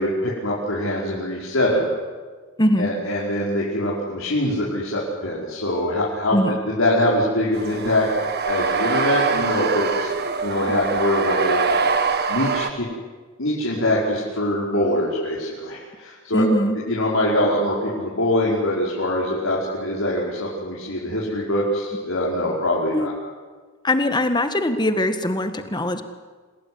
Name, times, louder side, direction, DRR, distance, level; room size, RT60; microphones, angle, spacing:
voice 1, 0.0-1.9 2.8-6.4 6.7-8.1 8.4-10.1 10.4-11.6 12.3-12.9 13.4-16.4 16.9-23.1, left 1 dB, 85° left, -5 dB, 5.4 m, -23 dB
voice 2, 2.6-2.9 6.3-6.5 16.3-16.8 22.9-23.1 23.8-26.0, left 1 dB, 20° left, 8 dB, 1.8 m, -21 dB
sound 1, 7.5-12.7, right 5 dB, 55° right, 1.8 m, -23 dB
27.5 x 19.0 x 9.7 m, 1.4 s
head